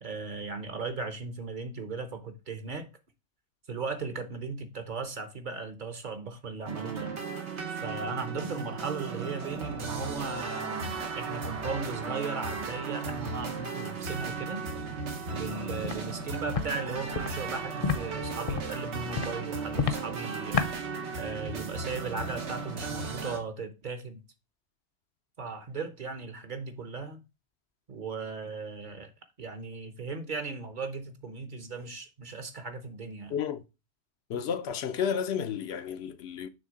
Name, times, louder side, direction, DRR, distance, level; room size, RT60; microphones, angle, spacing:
voice 1, 0.0-2.9 3.7-7.1 7.8-14.9 15.3-20.6 21.1-24.2 25.4-27.2 27.9-29.1 29.4-33.4 34.3-34.5, right 4 dB, 45° right, 0.9 m, -37 dB
sound 1, 6.7-23.4, right 4 dB, 85° right, 1.4 m, -36 dB
Walk footsteps, 15.8-16.0 16.5-16.7 17.1-17.3 17.8-18.0 18.4-18.7 19.1-19.3 19.7-20.0 20.5-20.7, left 6 dB, 45° left, 0.5 m, -28 dB
voice 2, 33.3-33.6 34.3-36.5, left 7 dB, 70° left, 0.8 m, -31 dB
6.4 x 3.4 x 5.0 m
omnidirectional pair, 1.1 m